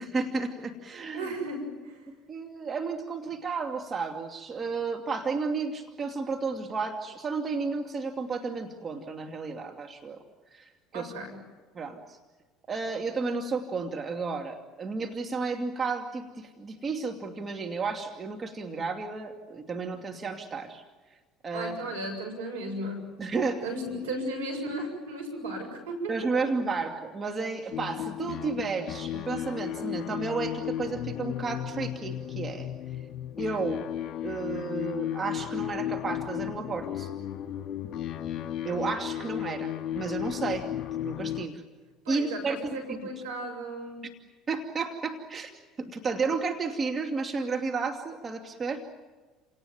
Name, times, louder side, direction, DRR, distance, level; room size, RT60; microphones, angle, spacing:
voice 1, 0.0-1.3 2.3-10.2 10.5-11.1 11.7-12.2 12.7-20.8 21.4-21.8 23.2-23.6 26.1-32.7 33.4-33.9 34.2-37.1 38.6-40.7 41.0-41.6 42.1-43.0 44.5-45.5 45.8-48.8, right 4 dB, 30° right, 4 dB, 2.5 m, -32 dB
voice 2, 1.1-2.0 10.9-11.4 21.5-23.1 23.6-26.1 42.0-44.0, right 1 dB, 85° right, 3 dB, 7.5 m, -35 dB
sound 1, 27.7-41.5, left 11 dB, 50° left, 2.8 m, -34 dB
29.5 x 18.5 x 9.3 m, 1.3 s
hypercardioid pair, 70°, 0 cm